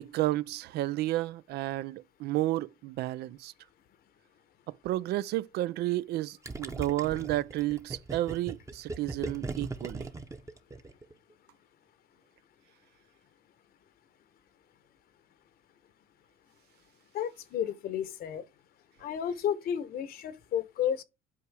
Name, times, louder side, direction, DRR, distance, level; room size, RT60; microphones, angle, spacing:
voice 1, 0.0-3.5 4.7-10.1, right 16 dB, 75° right, 0.4 m, -31 dB
Gurgling, 6.4-11.1, right 3 dB, 20° right, 0.9 m, -38 dB
voice 2, 17.1-18.4 19.0-21.0, left 9 dB, 65° left, 0.9 m, -32 dB
8.4 x 4.9 x 4.7 m
cardioid pair, 110°, 17 cm